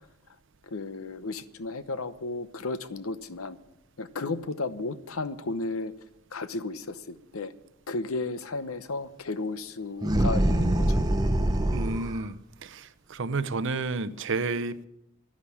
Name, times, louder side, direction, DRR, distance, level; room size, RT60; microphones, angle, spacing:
voice 1, 0.6-3.6 4.0-5.9 6.3-7.5 7.9-11.0, left 3 dB, 75° left, 0.9 m, -34 dB
sound 1, 10.0-12.2, right 1 dB, 20° right, 0.8 m, -24 dB
voice 2, 11.7-12.4 12.6-14.9, right 3 dB, 55° right, 0.7 m, -31 dB
11.5 x 10.0 x 8.5 m
head